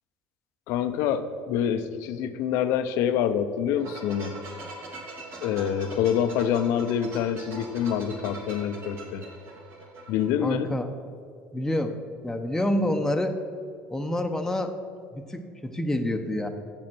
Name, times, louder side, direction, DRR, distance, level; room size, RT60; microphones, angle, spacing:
voice 1, 0.7-4.3 5.4-9.2 10.1-10.7, left 9 dB, 70° left, 11 dB, 0.6 m, -26 dB
sound 1, 3.8-10.3, right 2 dB, 55° right, 2.1 m, -41 dB
voice 2, 10.4-10.9 11.5-11.9 12.2-13.4 13.9-14.7 15.1-16.5, left 1 dB, 10° left, 4 dB, 0.8 m, -27 dB
7.4 x 7.2 x 6.1 m, 2.2 s
supercardioid pair, 85°, 5 cm